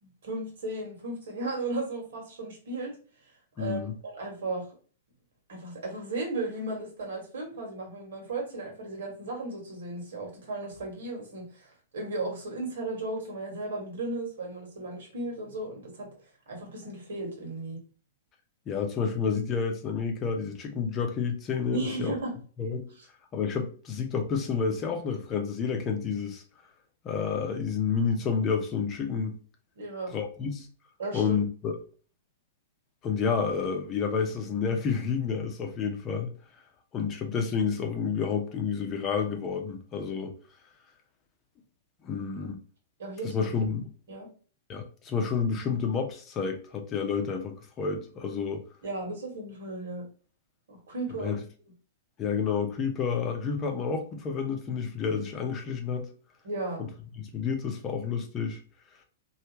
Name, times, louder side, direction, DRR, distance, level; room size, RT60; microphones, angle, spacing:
voice 1, 0.0-2.9 3.6-4.7 5.5-11.7 11.9-16.1 16.5-17.8 21.7-22.3 23.0-23.1 29.7-30.1 31.0-31.4 42.1-42.3 43.0-43.3 44.1-44.3 48.8-50.0 50.7-51.3 56.4-56.8, right 2 dB, 65° right, 1.6 m, -35 dB
voice 2, 3.6-4.0 18.7-22.1 22.6-22.9 23.3-26.4 27.0-29.4 30.1-30.7 31.1-31.7 33.0-36.3 36.9-40.4 42.0-42.6 43.2-43.9 44.7-48.6 51.1-51.4 52.2-56.1 56.8-56.9 57.2-58.6, left 6 dB, 30° left, 0.7 m, -30 dB
3.3 x 2.7 x 2.9 m
figure-of-eight pair, 110°, 0 cm